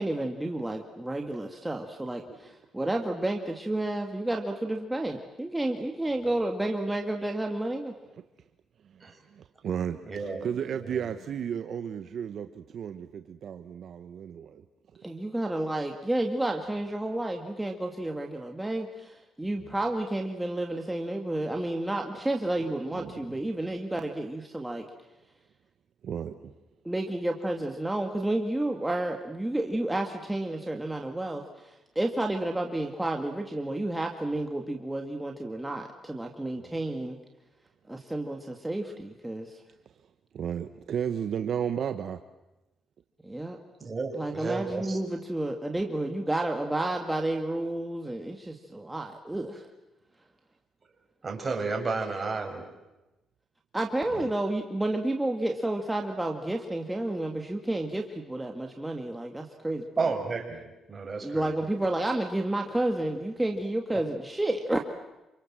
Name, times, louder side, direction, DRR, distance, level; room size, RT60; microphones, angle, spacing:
voice 1, 0.0-7.9 15.0-24.8 26.8-37.2 37.9-39.6 43.2-43.6 44.1-49.6 53.7-60.1 61.2-64.8, right 1 dB, 10° right, 2 dB, 2.2 m, -31 dB
voice 2, 9.3-14.6 22.6-23.1 26.0-26.5 40.3-42.2 54.1-54.3, right 8 dB, 60° right, 8 dB, 1.2 m, -34 dB
voice 3, 10.1-10.4 10.8-11.1 43.8-45.0 51.2-52.6 60.0-61.6 63.9-64.0, right 4 dB, 30° right, 3 dB, 6.1 m, -32 dB
27.5 x 26.0 x 7.6 m, 1.0 s
cardioid pair, 90°, 0 cm